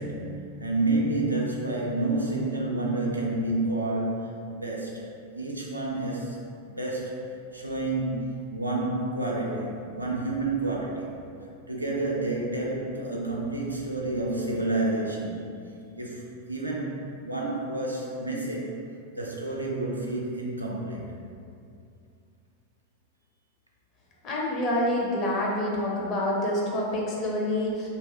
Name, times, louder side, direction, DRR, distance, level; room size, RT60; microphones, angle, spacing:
voice 1, 0.0-11.1 11.7-15.4 16.0-18.8 19.1-21.1, right 2 dB, 85° right, -2 dB, 0.4 m, -29 dB
voice 2, 24.2-27.9, left 1 dB, 35° left, -3 dB, 0.5 m, -27 dB
2.8 x 2.2 x 2.9 m, 2.4 s
figure-of-eight pair, 90°, 0 cm